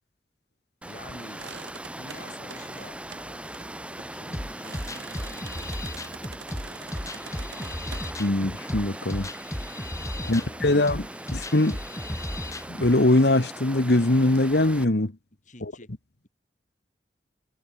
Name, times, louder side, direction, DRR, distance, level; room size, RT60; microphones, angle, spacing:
voice 1, 0.8-1.5 1.8-3.0 4.1-6.3 10.2-11.0 15.4-15.9, left 1 dB, 40° left, 6.4 m, -48 dB
Water, 0.8-14.9, right 1 dB, 5° right, 5.7 m, -40 dB
sound 1, 1.4-8.1, right 5 dB, 80° right, 5.0 m, -46 dB
sound 2, 4.3-12.9, left 1 dB, 15° left, 4.0 m, -35 dB
voice 2, 8.2-9.3 10.3-11.1 11.3-11.8 12.7-15.1, left 1 dB, 60° left, 1.4 m, -22 dB
head